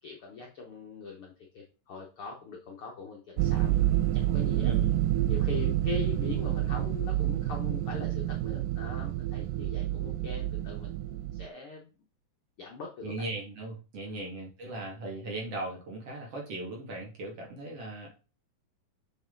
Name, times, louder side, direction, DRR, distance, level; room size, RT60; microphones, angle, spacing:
voice 1, 0.0-3.7 4.1-4.7 5.3-10.9 11.3-11.9 12.6-13.3 14.1-14.3, left 5 dB, 60° left, 0 dB, 1.5 m, -41 dB
sound 1, 3.4-11.5, right 14 dB, 80° right, 2.0 m, -28 dB
voice 2, 4.6-5.1 13.0-18.1, right 2 dB, 45° right, -1 dB, 2.7 m, -38 dB
6.9 x 6.2 x 3.9 m, 0.33 s
omnidirectional pair, 4.0 m